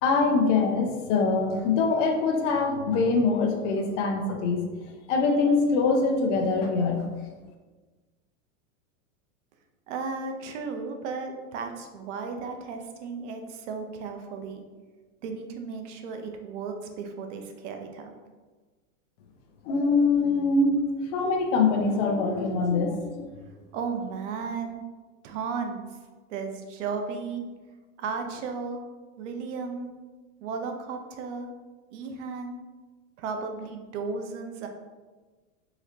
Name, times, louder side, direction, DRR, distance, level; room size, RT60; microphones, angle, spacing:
voice 1, 0.0-4.6 5.1-7.1 19.6-23.3, left 4 dB, 60° left, 3 dB, 0.8 m, -24 dB
voice 2, 9.9-14.6 15.2-18.1 23.7-24.8 25.2-25.9 26.3-27.4 28.0-28.8 29.2-30.0 30.4-31.5 31.9-32.6 33.2-34.7, right 5 dB, 65° right, 5 dB, 0.7 m, -34 dB
3.9 x 2.9 x 2.7 m, 1.3 s
hypercardioid pair, 115°, 40 cm